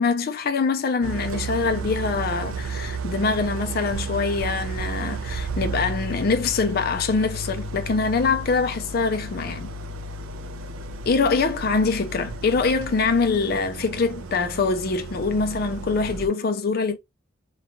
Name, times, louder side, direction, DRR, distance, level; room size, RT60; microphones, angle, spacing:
voice 1, 0.0-9.7 11.1-17.0, left 4 dB, 45° left, 0.4 m, -24 dB
Idling, 1.0-16.3, right 3 dB, 75° right, 0.4 m, -33 dB
2.3 x 2.2 x 2.8 m
head